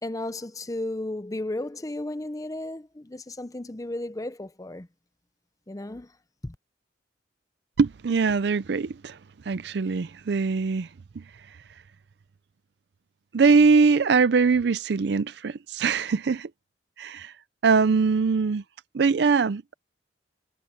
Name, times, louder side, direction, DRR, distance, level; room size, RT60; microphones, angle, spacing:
voice 1, 0.0-4.9 5.7-6.1 6.4-6.6, left 1 dB, 20° left, 0.6 m, -34 dB
voice 2, 7.8-9.2 9.5-10.9 13.3-16.5 17.0-17.3 17.6-18.6 18.9-19.7, right 4 dB, 65° right, 0.4 m, -22 dB
head